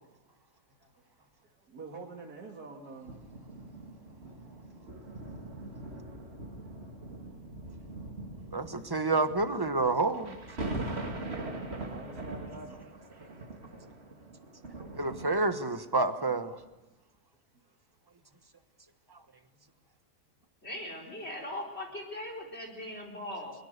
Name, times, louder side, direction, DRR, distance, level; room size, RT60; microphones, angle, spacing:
voice 1, 1.2-3.3 5.6-6.1 6.6-7.9 8.7-9.0 11.3-12.9 14.2-14.7 17.5-17.7 18.2-18.4, right 3 dB, 70° right, 0 dB, 2.8 m, -50 dB
sound 1, 3.0-15.8 16.5-16.6, right 2 dB, 40° right, 2.8 m, -42 dB
voice 2, 8.5-10.4 14.9-16.6, right 3 dB, 15° right, 9 dB, 1.1 m, -28 dB
voice 3, 20.6-23.5, left 1 dB, 40° left, 2 dB, 4.3 m, -39 dB
23.0 x 22.0 x 6.8 m, 1.0 s
omnidirectional pair, 1.7 m